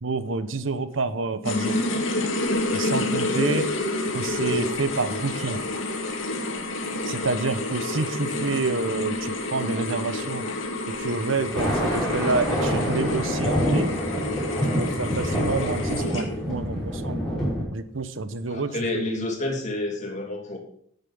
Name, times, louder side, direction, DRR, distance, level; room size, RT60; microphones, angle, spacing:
voice 1, 0.0-1.8 2.7-3.7 4.1-5.6 7.1-10.5 11.0-13.9 14.8-17.2 17.7-19.1, right 3 dB, 90° right, 12 dB, 0.9 m, -28 dB
sound 1, 1.4-16.5, left 2 dB, 85° left, 2.0 m, -29 dB
Thunder, 11.4-17.6, equal, ahead, 5.5 m, -26 dB
voice 2, 18.5-20.6, left 1 dB, 40° left, 1 dB, 2.8 m, -29 dB
10.5 x 8.1 x 5.6 m, 0.68 s
head